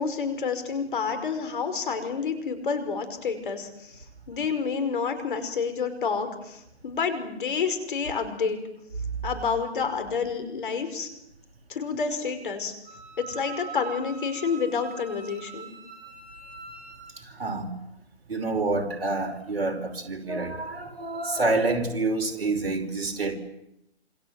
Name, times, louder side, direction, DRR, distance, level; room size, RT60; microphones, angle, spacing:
voice 1, 0.0-4.0 4.3-8.6 9.2-11.1 11.7-12.7 13.2-15.7, left 5 dB, 50° left, 9 dB, 5.4 m, -29 dB
Wind instrument woodwind instrument, 12.9-17.1, right 6 dB, 20° right, 5.2 m, -43 dB
voice 2, 17.2-17.7 18.3-23.4, right 2 dB, 60° right, 4 dB, 5.5 m, -28 dB
28.0 x 27.0 x 7.8 m, 0.81 s
figure-of-eight pair, 140°, 33 cm